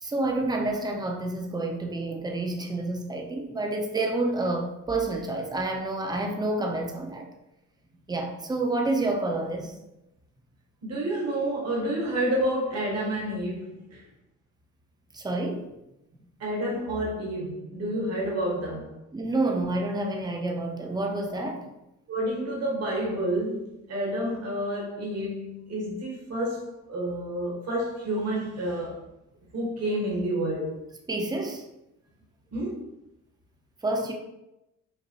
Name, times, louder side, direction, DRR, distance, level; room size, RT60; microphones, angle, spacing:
voice 1, 0.0-7.3 8.1-9.8 15.1-15.7 19.1-21.7 31.1-31.7 33.8-34.1, right 2 dB, 15° right, 0.7 m, -29 dB
voice 2, 10.8-14.0 16.4-19.0 22.1-29.0 29.5-30.8 32.5-32.9, right 1 dB, 55° right, 1.4 m, -29 dB
5.7 x 2.2 x 3.0 m
cardioid pair, 90°, 30 cm